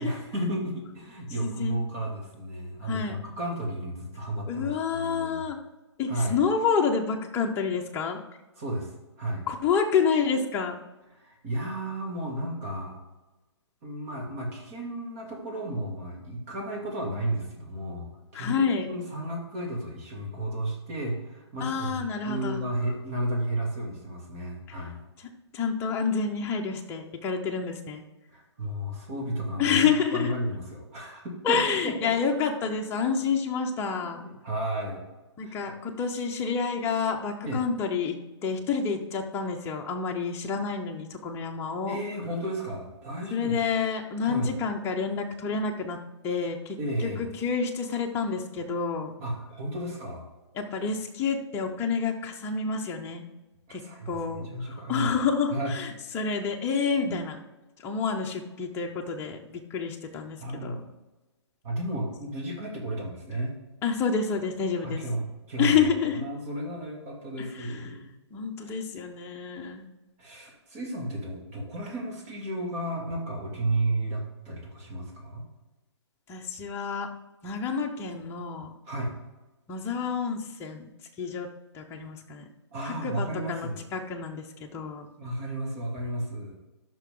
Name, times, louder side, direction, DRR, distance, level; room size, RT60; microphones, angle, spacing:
voice 1, 0.0-5.4 6.1-6.4 8.6-9.4 11.1-13.0 13.8-25.0 28.3-32.1 34.0-35.0 35.4-35.5 37.5-37.6 41.9-43.6 44.2-44.5 46.8-47.3 49.2-50.3 53.7-55.1 55.5-55.7 57.0-57.2 60.4-60.8 61.6-63.5 64.8-65.8 66.0-68.1 68.6-68.7 70.2-75.4 78.9-79.1 82.7-83.8 85.2-86.5, right 1 dB, 30° right, -1 dB, 2.8 m, -33 dB
voice 2, 1.4-1.8 2.9-3.2 4.5-5.6 6.0-8.2 9.5-10.8 18.3-18.9 21.6-22.6 24.7-24.8 25.5-28.0 29.6-30.3 31.4-34.2 35.4-42.0 43.3-46.0 46.2-46.8 47.0-49.1 50.5-53.2 53.7-57.4 57.8-60.8 63.8-65.0 65.6-66.2 67.4-67.8 68.3-69.8 76.3-77.1 77.4-78.7 79.7-80.9 81.2-81.5 81.7-82.5 82.8-85.1, left 5 dB, 15° left, 2 dB, 1.0 m, -28 dB
13.0 x 6.1 x 3.9 m, 1.1 s
hypercardioid pair, 145°, 15 cm